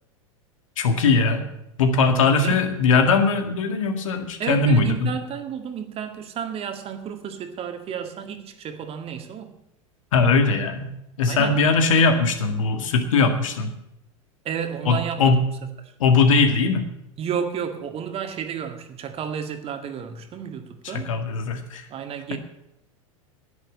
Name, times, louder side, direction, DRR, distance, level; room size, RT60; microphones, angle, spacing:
voice 1, 0.8-1.5 1.8-5.1 10.1-13.7 14.9-15.4 16.0-16.9 20.9-21.9, left 4 dB, 70° left, 6 dB, 1.9 m, -20 dB
voice 2, 2.4-2.7 4.4-9.6 11.3-11.6 14.4-15.4 15.8-15.9 17.2-21.1 21.9-22.4, right 8 dB, 35° right, 6 dB, 1.9 m, -32 dB
11.0 x 9.1 x 8.5 m, 0.81 s
figure-of-eight pair, 90°, 18 cm